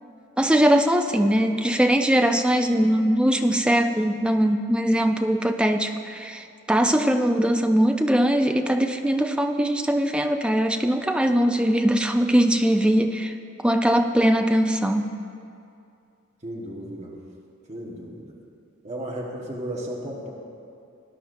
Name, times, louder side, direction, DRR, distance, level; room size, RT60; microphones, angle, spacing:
voice 1, 0.4-13.3 13.6-15.1, equal, 5° right, 5 dB, 0.4 m, -21 dB
voice 2, 16.4-17.1 17.7-18.4 18.8-20.3, right 1 dB, 35° right, -4 dB, 1.4 m, -34 dB
19.0 x 10.5 x 2.6 m, 2.5 s
head